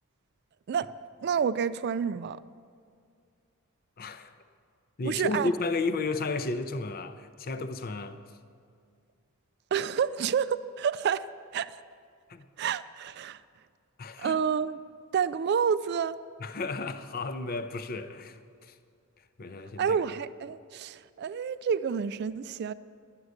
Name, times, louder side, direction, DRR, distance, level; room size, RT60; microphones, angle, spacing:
voice 1, 1.2-2.4 5.0-5.5 9.7-11.8 12.6-13.4 14.2-14.8 15.1-16.2 19.8-22.7, right 7 dB, 50° right, 0.3 m, -29 dB
voice 2, 4.0-4.3 5.0-8.2 12.3-12.4 14.0-14.4 16.4-18.7 19.4-20.0, left 3 dB, 45° left, 0.5 m, -33 dB
11.5 x 9.5 x 6.5 m
head